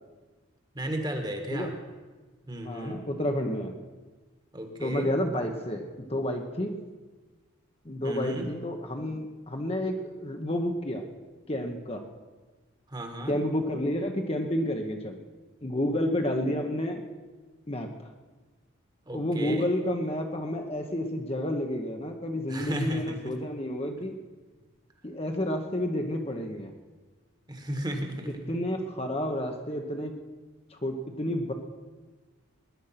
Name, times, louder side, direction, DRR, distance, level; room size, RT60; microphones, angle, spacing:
voice 1, 0.7-1.7 2.5-3.0 4.5-5.1 8.0-8.5 12.9-13.4 19.1-19.7 22.5-23.3 27.5-28.6, right 1 dB, 20° right, 5 dB, 1.6 m, -34 dB
voice 2, 2.6-3.7 4.8-6.7 7.8-11.0 11.5-12.0 13.3-15.2 15.6-17.0 17.7-17.9 19.1-24.1 25.0-26.7 28.5-30.2 30.7-31.5, left 1 dB, 25° left, 4 dB, 1.0 m, -30 dB
20.0 x 10.5 x 5.8 m, 1.3 s
head